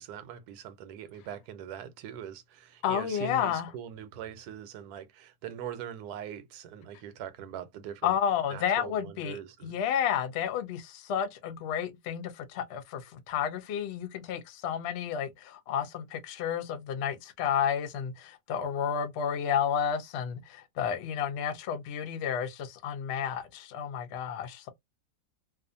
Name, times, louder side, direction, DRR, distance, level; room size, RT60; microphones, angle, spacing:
voice 1, 0.0-8.2 8.5-9.7, right 9 dB, 85° right, 1.1 m, -42 dB
voice 2, 2.8-3.7 8.0-24.7, left 8 dB, 70° left, 0.6 m, -31 dB
2.4 x 2.4 x 2.5 m
omnidirectional pair, 1.6 m